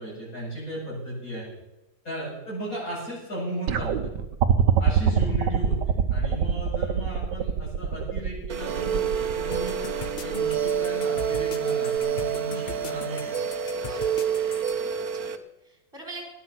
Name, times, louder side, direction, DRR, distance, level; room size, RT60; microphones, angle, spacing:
voice 1, 0.0-1.5 2.0-4.1 4.8-5.8 6.1-9.8 10.2-13.2, right 1 dB, 45° left, -5 dB, 8.7 m, -35 dB
sound 1, 3.7-10.8 12.0-12.1, right 8 dB, 70° right, 1.6 m, -24 dB
sound 2, 8.5-15.4, right 8 dB, 55° right, 1.4 m, -28 dB
sound 3, 9.5-14.8, left 6 dB, 60° left, 0.5 m, -40 dB
voice 2, 13.7-16.2, right 1 dB, 10° right, 0 dB, 4.5 m, -44 dB
19.0 x 11.5 x 6.1 m, 0.94 s
omnidirectional pair, 2.0 m